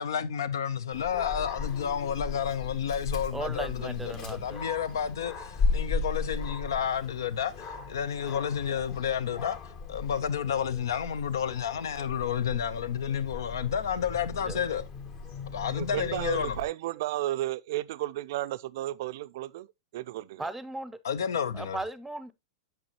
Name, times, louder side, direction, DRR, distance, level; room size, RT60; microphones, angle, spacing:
voice 1, 0.0-9.6 9.9-14.8 15.5-16.6 21.0-21.8, left 8 dB, 65° left, 0.7 m, -31 dB
Dog, 0.9-16.6, left 4 dB, 40° left, 1.4 m, -36 dB
voice 2, 3.3-4.7 14.4-14.6 20.4-21.0 21.5-22.3, right 2 dB, 5° right, 0.7 m, -37 dB
voice 3, 15.7-19.7 19.9-20.5, right 15 dB, 55° right, 0.4 m, -33 dB
8.5 x 6.1 x 2.9 m
figure-of-eight pair, 100°, 2 cm